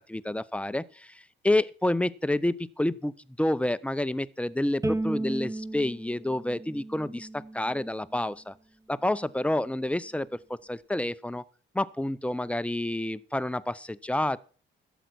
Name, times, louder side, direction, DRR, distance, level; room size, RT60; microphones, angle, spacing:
voice 1, 0.1-8.5 8.9-11.4 11.7-14.4, left 1 dB, 5° left, 0.6 m, -29 dB
Bowed string instrument, 4.8-8.0, right 2 dB, 15° right, 1.1 m, -34 dB
12.5 x 8.1 x 6.2 m
cardioid pair, 90°, 20 cm